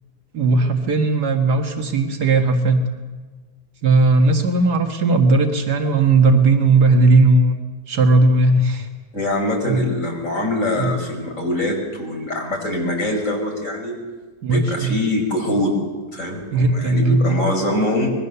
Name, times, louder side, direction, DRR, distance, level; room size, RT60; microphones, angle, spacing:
voice 1, 0.3-2.8 3.8-7.5 7.9-8.9 9.7-9.9 10.8-11.0 14.4-14.9 16.5-17.4, right 3 dB, 85° right, 4 dB, 2.2 m, -17 dB
voice 2, 9.1-14.0 14.5-15.7 16.1-18.1, left 1 dB, 50° left, 0 dB, 5.5 m, -23 dB
25.0 x 21.5 x 6.9 m, 1.3 s
omnidirectional pair, 1.7 m